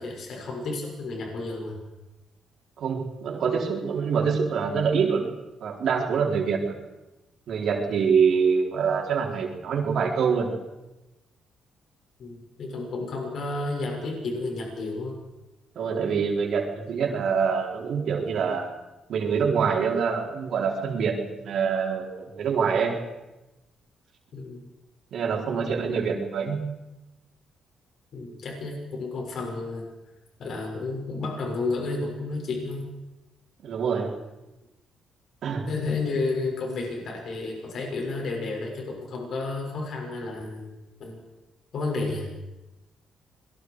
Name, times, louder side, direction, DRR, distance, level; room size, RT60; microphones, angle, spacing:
voice 1, 0.0-1.8 12.2-15.1 24.3-24.7 28.1-29.9 30.4-32.8 35.7-40.7 41.0-41.2 41.7-42.3, left 3 dB, 60° left, 0 dB, 6.5 m, -31 dB
voice 2, 2.8-5.3 5.6-6.7 7.5-10.5 15.8-18.7 19.1-23.0 25.1-26.7 33.6-34.1 35.4-35.6, right 6 dB, 65° right, 0 dB, 4.2 m, -25 dB
26.5 x 21.5 x 4.9 m, 1.0 s
cardioid pair, 90°, 0 cm